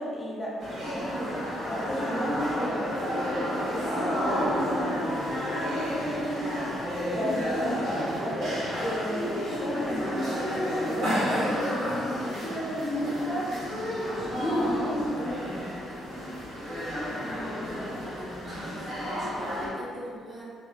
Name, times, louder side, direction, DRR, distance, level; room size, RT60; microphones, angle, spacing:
voice 1, 0.0-2.9 3.8-4.7 7.2-8.5 8.8-13.5 14.0-15.5, equal, 40° left, -5 dB, 0.5 m, -32 dB
sound 1, 0.6-19.7, equal, 70° right, 1.0 m, -31 dB
voice 2, 18.6-18.9 19.2-20.4, equal, 35° right, -8 dB, 1.0 m, -43 dB
2.7 x 2.2 x 2.2 m, 2.2 s
cardioid pair, 75°, 0 cm